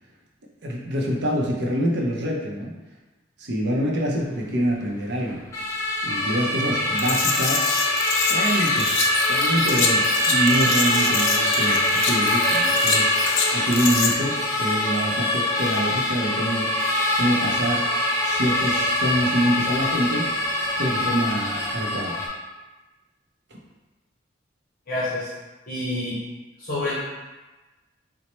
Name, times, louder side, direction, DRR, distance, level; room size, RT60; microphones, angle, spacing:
voice 1, 0.6-2.7 3.4-5.4 6.0-7.7 8.3-13.1 13.5-16.7 17.2-17.8 18.2-20.3 20.8-22.2, equal, 60° right, -2 dB, 0.6 m, -25 dB
sound 1, 5.5-22.3, left 1 dB, 15° left, 0.4 m, -23 dB
sound 2, 6.9-14.1, left 5 dB, 85° left, 0.4 m, -27 dB
voice 2, 24.9-25.3 25.7-26.2 26.6-26.9, left 2 dB, 45° left, -9 dB, 0.7 m, -27 dB
4.2 x 2.1 x 3.0 m, 1.2 s
head